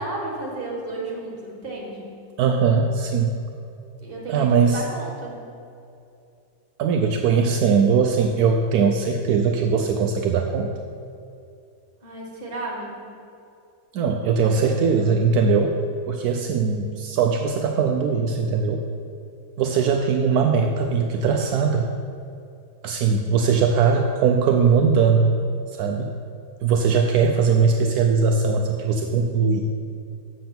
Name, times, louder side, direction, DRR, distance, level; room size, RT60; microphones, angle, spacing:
voice 1, 0.0-2.2 4.0-5.4 12.0-13.1, right 2 dB, 35° right, -2 dB, 1.8 m, -33 dB
voice 2, 2.4-3.4 4.3-4.8 6.8-10.7 13.9-15.8 16.1-18.8 19.6-21.9 22.8-25.4 25.7-26.1 26.6-29.7, right 5 dB, 75° right, 3 dB, 1.1 m, -20 dB
7.6 x 6.9 x 5.9 m, 2.6 s
omnidirectional pair, 1.7 m